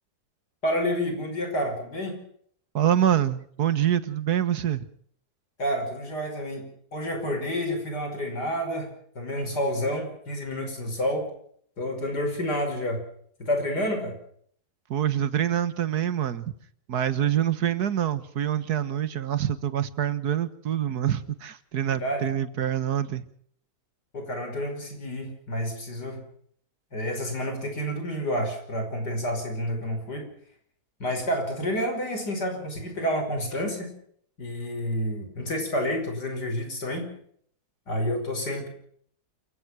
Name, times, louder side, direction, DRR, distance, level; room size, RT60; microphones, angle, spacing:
voice 1, 0.6-2.2 5.6-11.3 11.8-13.0 13.4-14.2 21.9-22.3 24.1-26.2 26.9-30.3 31.0-33.9 34.4-37.1 37.9-38.7, equal, 85° left, 5 dB, 6.1 m, -29 dB
voice 2, 2.7-4.8 14.9-16.5 16.9-23.2, right 10 dB, 75° right, 15 dB, 1.8 m, -26 dB
28.0 x 16.0 x 6.1 m, 0.62 s
omnidirectional pair, 1.7 m